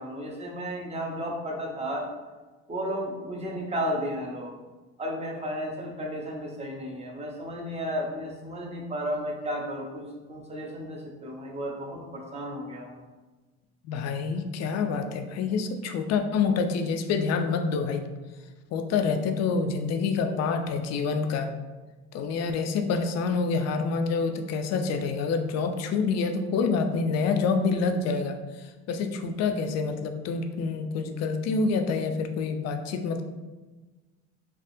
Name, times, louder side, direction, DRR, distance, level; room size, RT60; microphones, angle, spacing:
voice 1, 0.0-2.1 2.7-4.5 5.0-13.0, equal, 20° right, -1 dB, 0.7 m, -33 dB
voice 2, 13.8-18.1 18.7-21.5 22.1-33.2, left 4 dB, 55° left, 6 dB, 0.4 m, -27 dB
3.4 x 2.4 x 2.6 m, 1.3 s
cardioid pair, 100°, 32 cm